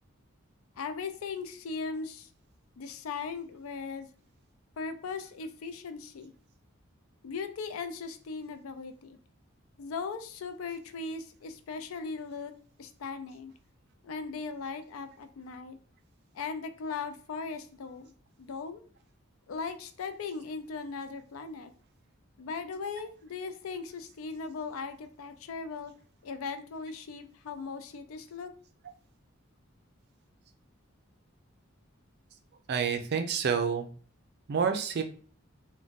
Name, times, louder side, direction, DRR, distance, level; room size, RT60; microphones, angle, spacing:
voice 1, 0.8-2.3 2.8-4.1 4.8-6.3 7.2-9.2 9.8-12.5 12.8-13.5 14.0-15.8 16.3-18.1 18.4-18.8 19.5-21.7 22.4-25.9 26.2-28.5, left 4 dB, 85° left, 9 dB, 0.4 m, -38 dB
voice 2, 32.7-33.9 34.5-35.0, right 6 dB, 50° right, 7 dB, 0.4 m, -28 dB
2.4 x 2.2 x 3.9 m, 0.42 s
head